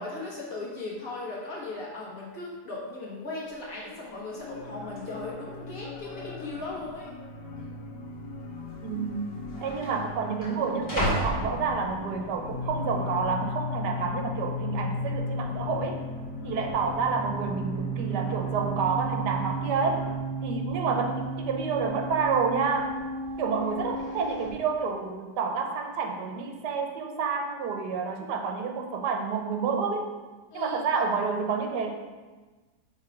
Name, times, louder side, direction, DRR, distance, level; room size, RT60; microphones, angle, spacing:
voice 1, 0.0-7.1 30.5-30.8, left 2 dB, 55° left, -5 dB, 1.9 m, -37 dB
sound 1, 3.5-3.6 3.8-4.2 5.0-5.1 5.8-6.3 6.6-6.7 7.6-7.7 8.7-8.8 9.1-12.3 12.8-13.2, equal, 35° left, 2.3 m, -34 dB
sound 2, 4.3-20.2, left 3 dB, 85° left, 1.6 m, -42 dB
voice 2, 8.8-9.3 9.6-16.0 16.4-20.1 20.4-23.0 23.4-30.1 30.5-31.9, right 5 dB, 90° right, 3 dB, 1.4 m, -29 dB
sound 3, 11.8-24.5, right 1 dB, 40° right, 1.2 m, -34 dB
6.7 x 3.6 x 4.8 m, 1.3 s
omnidirectional pair, 1.7 m